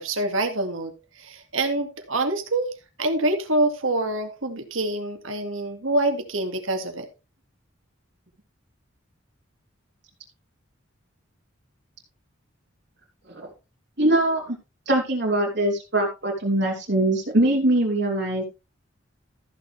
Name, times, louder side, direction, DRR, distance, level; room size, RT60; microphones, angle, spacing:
voice 1, 0.0-2.7 3.0-7.1, right 2 dB, 85° right, 6 dB, 2.2 m, -26 dB
voice 2, 14.0-14.6 14.9-18.4, right 1 dB, 60° right, 0 dB, 3.0 m, -22 dB
14.0 x 7.0 x 3.4 m, 0.29 s
head